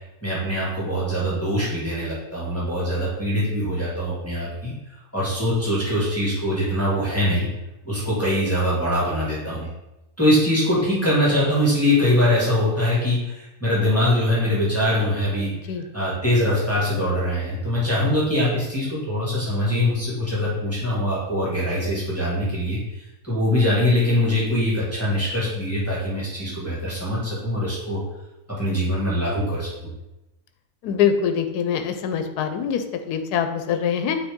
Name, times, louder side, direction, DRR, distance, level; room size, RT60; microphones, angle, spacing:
voice 1, 0.2-7.5 7.8-9.7 10.2-15.5 15.9-28.0 28.6-29.7, left 1 dB, 10° left, -8 dB, 2.0 m, -23 dB
voice 2, 30.8-34.2, left 8 dB, 90° left, 7 dB, 1.2 m, -24 dB
8.8 x 4.0 x 3.7 m, 0.97 s
omnidirectional pair, 1.6 m